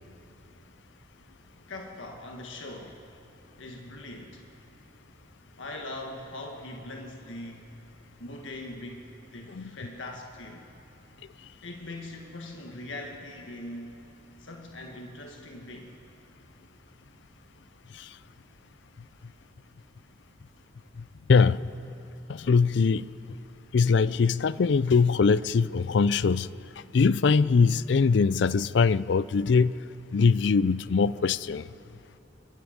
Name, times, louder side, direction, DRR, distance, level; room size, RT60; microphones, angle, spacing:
voice 1, 1.7-3.0 3.6-4.4 5.6-7.7 8.2-10.7 11.6-14.1 14.4-16.0, left 1 dB, 85° left, 1 dB, 1.6 m, -41 dB
voice 2, 21.3-21.7 22.3-23.1 23.7-26.5 26.9-29.7 30.1-31.7, left 5 dB, 65° left, 18 dB, 0.4 m, -22 dB
25.5 x 23.0 x 5.2 m, 2.9 s
head